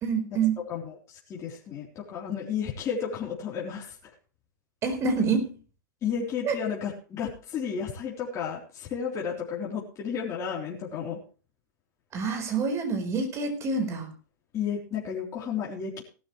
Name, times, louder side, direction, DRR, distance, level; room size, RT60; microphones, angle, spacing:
voice 1, 0.0-0.6 4.8-5.6 6.4-6.5 12.1-14.1, right 5 dB, 25° right, 6 dB, 4.4 m, -27 dB
voice 2, 0.7-3.9 6.0-11.2 14.5-16.0, left 7 dB, 30° left, -3 dB, 3.8 m, -32 dB
18.0 x 12.5 x 3.2 m, 0.37 s
hypercardioid pair, 130°, 10 cm